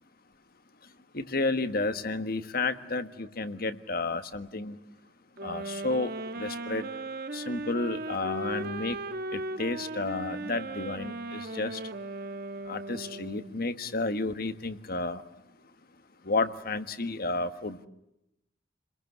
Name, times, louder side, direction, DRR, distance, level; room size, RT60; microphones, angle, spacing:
voice 1, 0.8-4.8 5.4-6.9 7.3-9.0 9.3-11.9 12.6-15.2 16.2-17.8, left 3 dB, 55° left, 1.5 m, -32 dB
sound 1, 5.4-13.6, right 2 dB, 55° right, 1.2 m, -37 dB
30.0 x 22.0 x 8.1 m
head